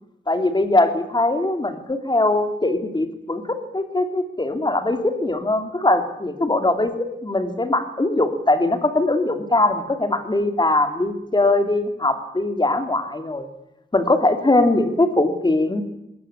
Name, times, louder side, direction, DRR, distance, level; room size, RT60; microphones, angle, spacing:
voice 1, 0.3-13.5 13.9-15.8, left 2 dB, 25° left, 7 dB, 2.9 m, -21 dB
21.0 x 18.5 x 8.8 m, 0.82 s
wide cardioid pair, 120°, 20 cm